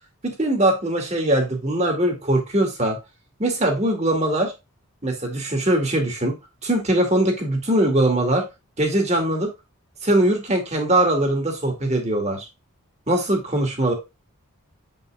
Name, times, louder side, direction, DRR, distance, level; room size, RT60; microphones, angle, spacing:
voice 1, 0.2-3.0 3.4-4.5 5.0-6.3 6.6-8.4 8.8-9.5 10.0-12.5 13.1-13.9, right 1 dB, 30° right, 2 dB, 2.1 m, -21 dB
7.7 x 5.5 x 2.3 m, 0.24 s
head